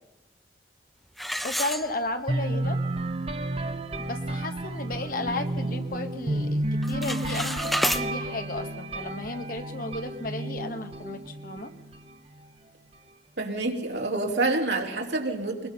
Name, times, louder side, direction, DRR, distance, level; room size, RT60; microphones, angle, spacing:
sound 1, 1.2-2.4 2.9-3.0 3.5-3.6 4.0-4.3 4.8-5.9 6.2-6.5 6.8-8.0, equal, ahead, 0.9 m, -30 dB
voice 1, 1.4-2.8 4.0-11.7, left 2 dB, 50° left, 7 dB, 1.6 m, -34 dB
sound 2, 2.3-12.1, right 1 dB, 35° right, 1.0 m, -31 dB
voice 2, 13.4-15.7, right 2 dB, 80° right, 1 dB, 3.1 m, -27 dB
22.0 x 21.5 x 5.6 m, 1.0 s
head